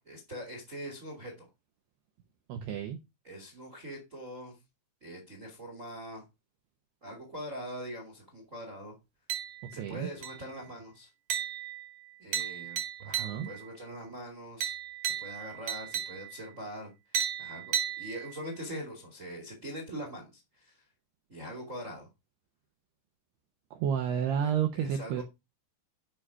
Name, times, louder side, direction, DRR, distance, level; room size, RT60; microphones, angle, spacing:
voice 1, 0.0-1.5 3.2-4.6 5.0-6.2 7.0-8.9 9.7-11.1 12.2-14.7 15.2-20.8 21.3-22.1 24.7-25.2, equal, 35° right, 1.2 m, -43 dB
voice 2, 2.5-3.0 9.8-10.1 13.2-13.5 23.7-25.2, right 8 dB, 75° right, 2.6 m, -30 dB
sound 1, 9.3-9.9 10.2-10.6 11.3-13.7 14.6-16.5 17.1-18.6, right 9 dB, 55° right, 2.2 m, -35 dB
10.0 x 5.7 x 4.9 m
omnidirectional pair, 5.8 m